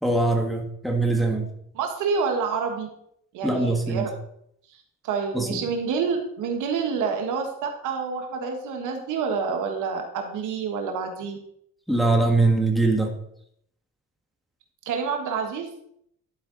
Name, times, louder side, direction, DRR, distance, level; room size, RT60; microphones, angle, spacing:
voice 1, 0.0-1.5 3.4-4.1 5.3-5.6 11.9-13.1, right 2 dB, ahead, 1 dB, 1.6 m, -22 dB
voice 2, 1.7-2.9 3.3-4.1 5.0-11.4 14.8-15.7, right 5 dB, 90° right, 3 dB, 1.4 m, -28 dB
11.0 x 4.7 x 3.9 m, 0.71 s
cardioid pair, 90°, 30 cm